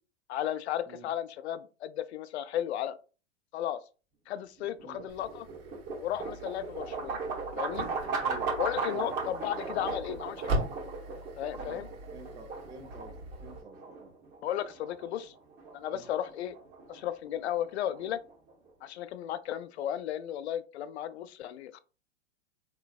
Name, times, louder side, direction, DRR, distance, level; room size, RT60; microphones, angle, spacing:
voice 1, 0.3-3.0 3.5-3.8 4.3-5.5 6.0-7.2 7.6-7.9 8.5-10.6 11.4-11.9 14.4-15.3 15.7-16.6 16.9-18.2 18.8-21.8, left 11 dB, 65° left, 0.5 m, -34 dB
sound 1, 4.6-18.7, right 4 dB, 30° right, 1.0 m, -38 dB
sound 2, 5.1-13.6, right 1 dB, 55° right, 1.6 m, -40 dB
voice 2, 8.2-8.5 8.9-9.2 11.6-11.8 12.1-14.1 15.1-15.2 15.9-16.1, right 4 dB, 10° right, 0.4 m, -48 dB
3.9 x 3.1 x 2.3 m
hypercardioid pair, 110°, 35 cm